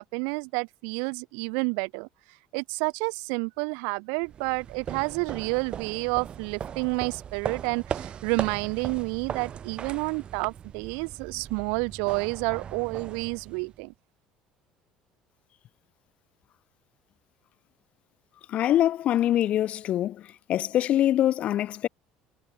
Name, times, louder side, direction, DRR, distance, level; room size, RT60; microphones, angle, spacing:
voice 1, 0.0-2.1 2.5-13.9, right 40 dB or more, 85° right, 3.2 m, -30 dB
sound 1, 4.2-13.9, right 8 dB, 40° right, 7.9 m, -38 dB
voice 2, 18.5-20.2 20.5-21.9, left 12 dB, 55° left, 1.8 m, -24 dB
cardioid pair, 110°, 3 cm